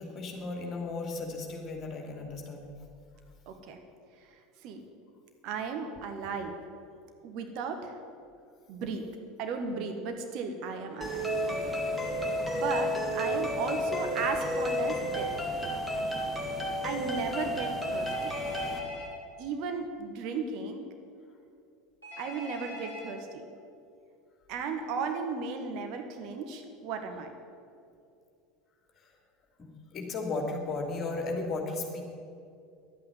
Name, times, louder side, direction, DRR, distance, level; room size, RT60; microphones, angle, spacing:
voice 1, 0.0-2.7 28.9-29.2 29.6-32.0, left 3 dB, 35° left, 2 dB, 2.7 m, -35 dB
voice 2, 3.5-3.8 4.6-4.8 5.4-6.5 7.2-8.0 8.7-9.0 9.4-11.8 12.5-15.3 16.8-18.3 19.4-20.9 22.2-23.4 24.5-27.3, right 5 dB, 50° right, 5 dB, 1.5 m, -35 dB
sound 1, 11.0-18.8, equal, 5° right, 2.4 m, -31 dB
Telephone, 18.0-19.1 22.0-23.1, left 1 dB, 85° right, 4.1 m, -42 dB
11.0 x 8.8 x 9.4 m, 2.4 s
figure-of-eight pair, 75°, 0 cm